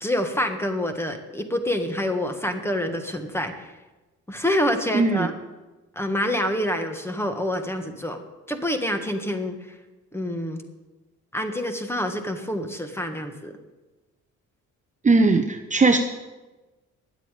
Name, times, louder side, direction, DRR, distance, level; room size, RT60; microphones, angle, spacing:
voice 1, 0.0-3.7 4.3-5.3 5.9-8.2 8.5-9.6 10.1-10.6 11.3-13.5, left 1 dB, 10° left, 6 dB, 1.6 m, -27 dB
voice 2, 4.9-5.3 15.0-16.0, right 3 dB, 25° right, 6 dB, 0.9 m, -19 dB
10.5 x 8.2 x 9.2 m, 1.2 s
cardioid pair, 90°, 30 cm